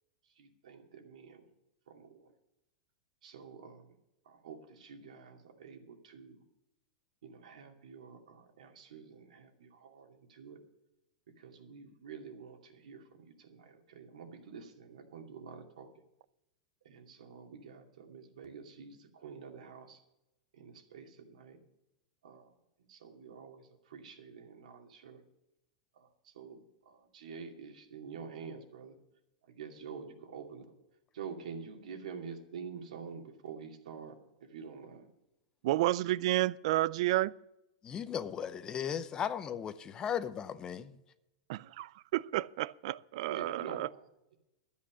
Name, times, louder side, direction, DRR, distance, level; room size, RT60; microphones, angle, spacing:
voice 1, 0.2-1.5 1.9-2.3 3.2-3.9 4.2-6.4 7.2-10.6 11.4-15.9 16.8-20.0 20.5-21.6 22.2-22.5 22.9-25.2 25.9-28.9 29.4-30.6 31.1-34.1 34.4-35.1 43.2-44.4, right 6 dB, 85° right, 2.5 m, -48 dB
voice 2, 35.6-37.3 41.5-43.9, right 16 dB, 55° right, 0.4 m, -31 dB
voice 3, 37.8-40.9, left 8 dB, 20° left, 0.6 m, -36 dB
13.0 x 8.5 x 6.2 m
supercardioid pair, 155°, 4 cm